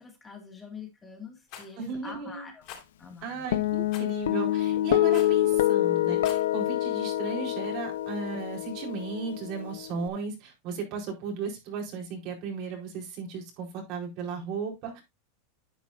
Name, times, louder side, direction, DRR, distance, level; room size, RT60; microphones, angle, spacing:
voice 1, 0.0-2.7 3.0-3.4, left 5 dB, 15° left, 2.3 m, -45 dB
Rattle, 1.5-1.7 2.6-2.8 3.9-4.1 5.1-5.4 6.1-6.5, left 9 dB, 50° left, 4.9 m, -43 dB
voice 2, 1.8-2.5 3.2-15.0, right 4 dB, 50° right, 4.3 m, -35 dB
Guitar, 3.5-10.1, left 14 dB, 85° left, 0.9 m, -26 dB
10.5 x 8.5 x 2.6 m
supercardioid pair, 140°, 0 cm